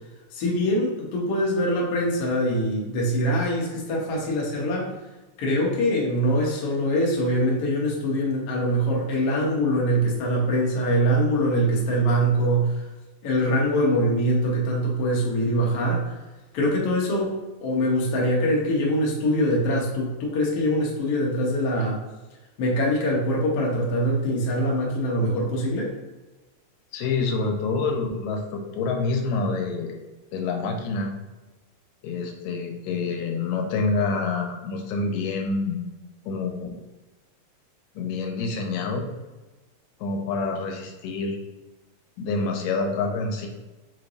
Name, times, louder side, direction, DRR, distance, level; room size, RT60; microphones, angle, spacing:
voice 1, 0.3-4.9 5.4-12.8 13.2-16.0 16.5-22.0 22.6-25.9, equal, 65° left, -3 dB, 1.5 m, -23 dB
voice 2, 26.9-29.9 30.3-31.1 32.0-35.8 36.3-36.7 38.0-39.1 40.0-41.4 42.2-43.5, left 4 dB, 85° left, 2 dB, 2.3 m, -27 dB
5.6 x 3.2 x 2.5 m, 1.1 s
omnidirectional pair, 3.9 m